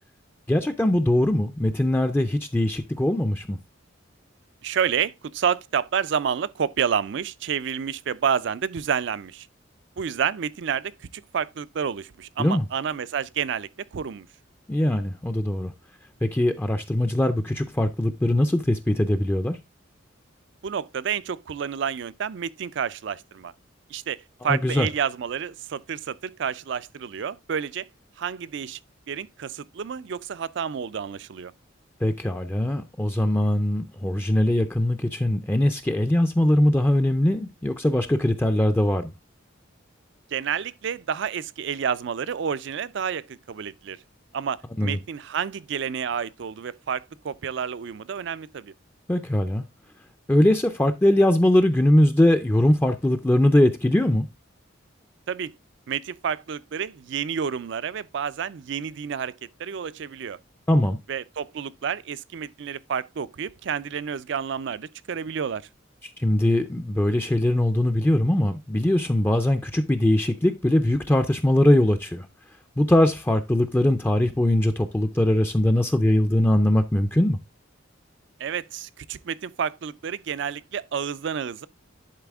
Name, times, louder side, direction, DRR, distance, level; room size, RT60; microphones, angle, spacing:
voice 1, 0.5-3.6 12.4-12.6 14.7-15.7 16.2-19.6 24.4-24.9 32.0-39.1 44.8-45.0 49.1-49.6 50.3-54.3 60.7-61.0 66.2-72.3 72.8-77.4, left 1 dB, 10° left, 0.4 m, -21 dB
voice 2, 4.6-9.5 10.0-14.3 20.6-23.5 23.9-27.9 28.2-28.8 29.1-31.5 40.3-44.0 44.3-48.7 55.3-55.5 55.9-60.4 61.1-65.7 78.4-81.7, right 7 dB, 65° right, 0.4 m, -29 dB
10.5 x 4.1 x 3.5 m
head